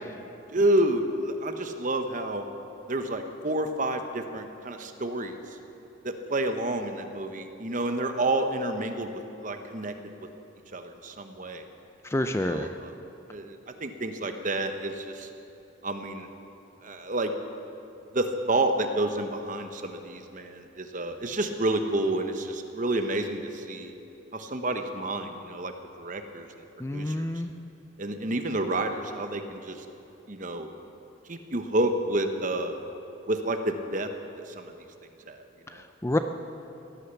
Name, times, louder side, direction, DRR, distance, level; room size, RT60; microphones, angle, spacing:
voice 1, 0.5-2.4 2.9-5.4 6.0-9.9 10.7-11.6 12.4-12.9 13.3-15.3 15.8-16.3 16.8-17.3 18.1-23.9 24.3-25.7 26.0-26.5 26.9-27.3 28.0-29.8 30.3-30.7 31.3-32.8 33.3-34.1 34.5-34.7 35.3-35.8, right 1 dB, 40° right, 7 dB, 0.9 m, -29 dB
voice 2, 12.1-12.7 26.8-27.5 36.0-36.2, left 1 dB, 15° left, 7 dB, 0.4 m, -27 dB
17.0 x 9.9 x 7.1 m, 2.9 s
head